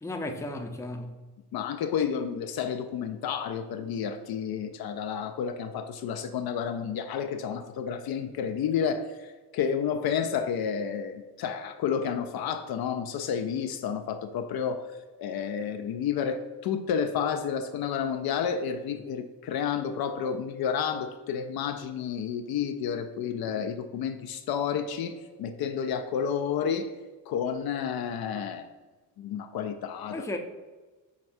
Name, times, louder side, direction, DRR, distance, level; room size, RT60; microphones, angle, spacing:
voice 1, 0.0-1.2 30.1-30.4, left 1 dB, 5° left, 0.6 m, -34 dB
voice 2, 1.5-14.8 15.2-25.1 25.4-26.9 27.3-28.7 29.2-30.3, left 7 dB, 60° left, 0.5 m, -30 dB
5.9 x 3.1 x 2.6 m
supercardioid pair, 65°, 41 cm